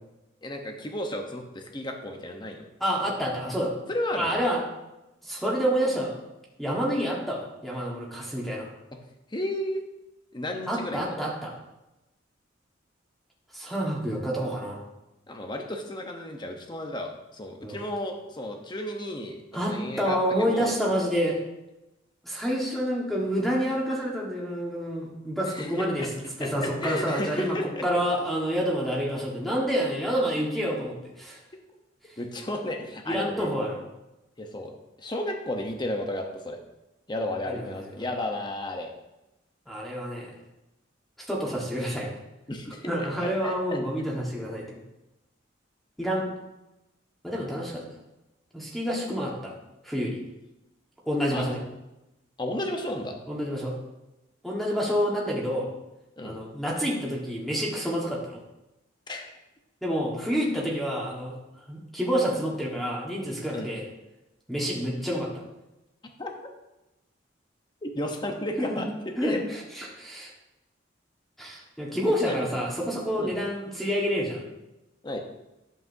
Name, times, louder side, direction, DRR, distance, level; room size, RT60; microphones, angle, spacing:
voice 1, 0.4-2.6 3.9-4.4 9.3-9.8 10.3-11.0 15.3-19.4 19.7-20.7 25.5-26.1 26.4-27.8 32.2-33.5 34.4-34.7 35.0-36.6 37.1-38.9 42.5-43.1 43.4-43.8 51.3-51.5 52.4-53.2 56.2-56.4 59.1-59.3 63.5-63.7 66.2-66.5 67.8-68.9 69.2-69.4 72.2-72.6 73.2-73.4 75.0-75.2, left 1 dB, 25° left, 3 dB, 0.9 m, -33 dB
voice 2, 2.8-3.7 4.1-4.6 5.2-6.1 6.6-8.7 10.7-11.5 13.5-14.9 17.6-17.8 19.5-21.4 22.2-27.6 27.8-31.4 33.1-33.8 37.5-37.7 39.7-40.3 41.2-42.1 42.9-44.8 46.0-46.3 47.2-47.8 48.5-49.5 49.8-50.2 51.0-51.6 53.3-53.7 54.4-55.7 56.2-58.4 59.8-61.4 61.7-63.8 64.5-65.3 68.6-68.8 69.2-70.3 71.4-74.4, equal, ahead, -4 dB, 1.5 m, -28 dB
11.0 x 7.4 x 2.7 m, 0.97 s
head